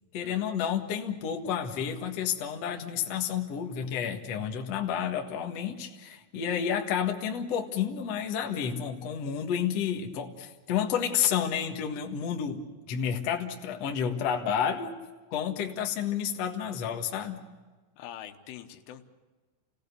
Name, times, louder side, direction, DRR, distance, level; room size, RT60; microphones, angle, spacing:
voice 1, 0.1-14.9 15.3-17.4, left 8 dB, 65° left, 2 dB, 1.6 m, -30 dB
voice 2, 18.0-19.1, left 11 dB, 85° left, 7 dB, 3.7 m, -44 dB
29.0 x 18.0 x 6.8 m, 1.3 s
omnidirectional pair, 5.6 m